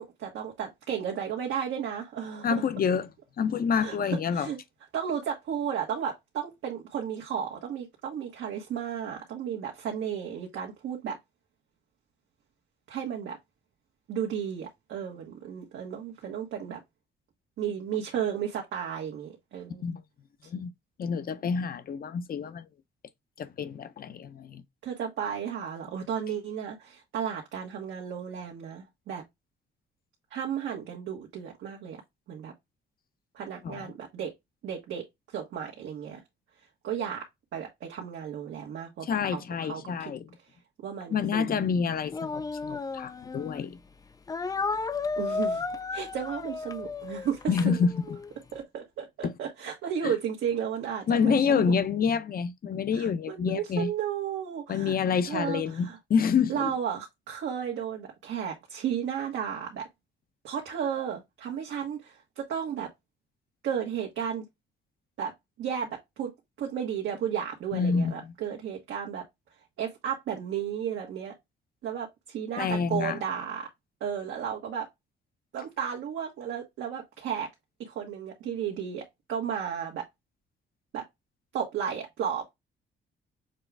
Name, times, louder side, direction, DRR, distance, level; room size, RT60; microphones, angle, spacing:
voice 1, 0.0-2.6 3.8-4.6 4.9-11.2 12.9-13.4 14.1-16.8 17.6-19.9 20.4-20.5 24.8-29.2 30.3-32.0 32.3-32.5 33.3-34.3 34.6-36.2 36.8-37.3 37.5-39.1 39.3-39.8 40.8-41.8 45.2-45.6 45.9-47.8 48.5-51.7 52.9-54.9 55.2-56.0 56.5-59.9 60.4-62.9 63.6-64.4 65.2-65.3 65.6-66.3 66.6-69.2 69.8-71.3 71.8-73.7 74.0-74.9 75.5-77.5 77.8-80.1 80.9-81.0 81.5-82.5, right 8 dB, 80° right, 1.4 m, -33 dB
voice 2, 2.4-3.1 3.4-4.5 19.8-20.0 20.4-20.7 21.0-22.7 23.4-24.6 33.6-33.9 39.0-40.3 41.1-43.8 47.5-48.2 49.2-49.3 50.0-50.1 51.1-53.9 54.7-56.7 67.7-68.3 72.5-73.2, left 6 dB, 45° left, 0.8 m, -28 dB
Speech, 42.1-43.6 44.3-48.3, left 4 dB, 20° left, 0.4 m, -33 dB
6.6 x 2.4 x 3.4 m
cardioid pair, 90°, 20 cm